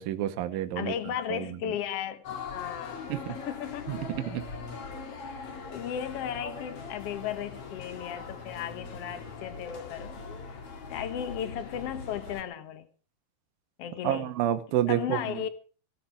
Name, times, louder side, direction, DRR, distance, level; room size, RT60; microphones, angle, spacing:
voice 1, 0.0-1.0 1.3-1.6 3.1-3.4 3.9-4.5 14.0-15.4, right 12 dB, 70° right, 2.7 m, -29 dB
voice 2, 0.7-2.2 2.5-4.0 5.2-10.6 10.9-12.9 13.8-14.3 14.9-15.5, left 9 dB, 70° left, 1.5 m, -35 dB
sound 1, 2.2-12.4, left 4 dB, 40° left, 2.6 m, -41 dB
18.0 x 11.5 x 4.8 m
omnidirectional pair, 4.8 m